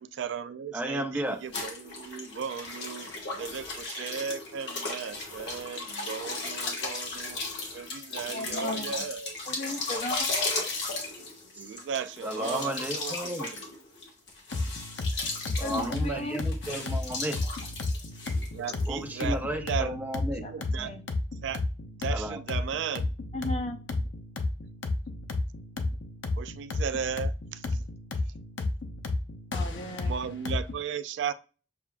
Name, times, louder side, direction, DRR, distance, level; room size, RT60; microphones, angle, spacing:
voice 1, 0.0-7.5 7.7-9.8 11.6-13.7 18.5-20.0 20.3-20.9 21.4-21.6 22.0-23.1 26.4-27.8 30.0-31.3, right 7 dB, 75° right, 0.3 m, -36 dB
voice 2, 0.7-1.4 11.6-11.7 12.2-13.5 15.6-17.4 18.9-20.4 22.1-22.4, right 1 dB, 10° right, 0.6 m, -33 dB
sound 1, 1.5-18.9, left 3 dB, 65° left, 1.3 m, -36 dB
voice 3, 8.3-8.9 9.5-10.3 15.6-16.4 20.4-21.0 23.3-23.8 29.5-30.1, left 1 dB, 35° left, 0.6 m, -35 dB
sound 2, 14.5-30.7, left 2 dB, 85° left, 0.7 m, -32 dB
7.0 x 2.4 x 2.2 m
head